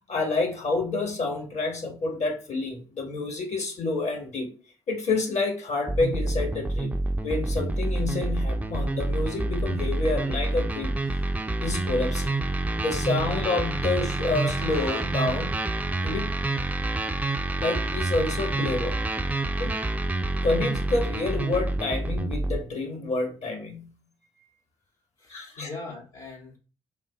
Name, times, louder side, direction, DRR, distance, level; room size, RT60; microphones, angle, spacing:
voice 1, 0.1-4.5 4.9-6.9 7.2-11.0 11.6-12.5 12.8-15.6 16.0-16.4 17.6-19.1 19.6-19.7 20.4-24.0 25.3-25.7, left 3 dB, 50° left, 1.6 m, -28 dB
sound 1, 5.9-22.6, right 2 dB, 10° right, 0.6 m, -28 dB
voice 2, 25.2-26.6, left 3 dB, 70° left, 2.1 m, -40 dB
5.8 x 2.2 x 4.2 m
figure-of-eight pair, 40°, 15 cm